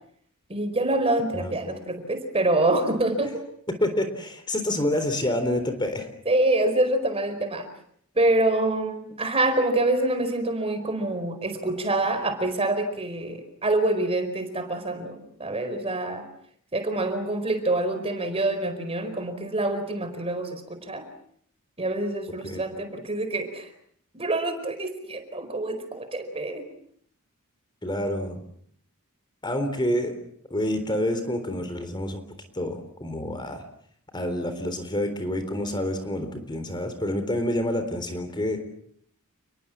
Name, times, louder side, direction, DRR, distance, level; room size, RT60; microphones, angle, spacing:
voice 1, 0.5-3.4 6.2-7.7 8.1-16.2 16.7-21.0 21.8-23.7 24.1-26.7, right 2 dB, 25° right, 8 dB, 4.7 m, -26 dB
voice 2, 3.7-6.1 22.4-22.6 27.8-28.4 29.4-30.2 30.5-32.2 32.5-33.6 34.1-38.6, left 1 dB, 20° left, 8 dB, 3.8 m, -28 dB
30.0 x 22.0 x 7.5 m, 0.66 s
head